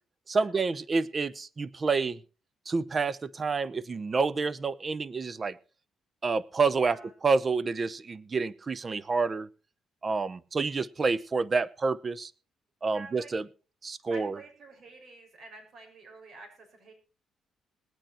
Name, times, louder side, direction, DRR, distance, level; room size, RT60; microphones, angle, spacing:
voice 1, 0.3-2.2 2.7-5.6 6.2-7.0 7.2-9.5 10.0-12.3 12.8-13.5 13.8-14.3, right 4 dB, 35° right, 19 dB, 0.7 m, -28 dB
voice 2, 6.7-7.1 12.9-13.3 14.1-16.9, right 3 dB, 60° right, 3 dB, 6.2 m, -48 dB
19.5 x 9.1 x 4.4 m, 0.35 s
cardioid pair, 90°, 0 cm